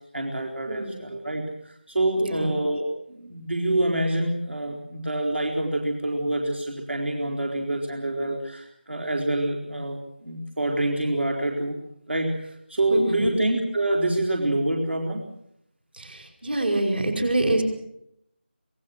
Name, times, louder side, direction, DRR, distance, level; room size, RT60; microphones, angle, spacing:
voice 1, 0.1-11.8 12.1-15.2, right 1 dB, 80° right, 1 dB, 4.1 m, -26 dB
voice 2, 0.7-1.0 2.2-2.5 12.9-13.4 15.9-17.6, right 2 dB, 60° right, 3 dB, 5.3 m, -26 dB
26.0 x 18.5 x 6.3 m, 0.76 s
figure-of-eight pair, 165°, 6 cm